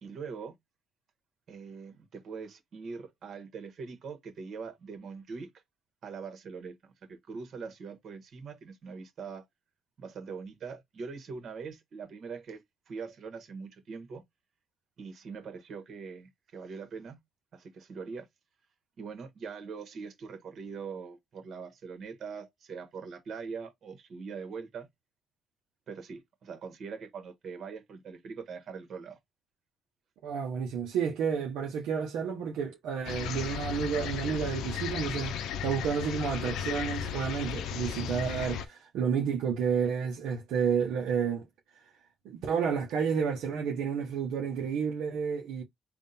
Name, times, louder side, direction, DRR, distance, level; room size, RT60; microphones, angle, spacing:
voice 1, 0.0-0.5 1.5-5.5 6.0-9.4 10.0-14.2 15.0-17.2 17.5-18.3 19.0-24.9 25.9-29.2, right 5 dB, 65° right, 1.4 m, -42 dB
voice 2, 30.2-35.3 35.6-41.5 42.2-45.6, right 7 dB, 85° right, 0.8 m, -30 dB
sound 1, 33.1-38.7, left 8 dB, 85° left, 0.6 m, -35 dB
3.6 x 2.4 x 4.1 m
cardioid pair, 75°, 0 cm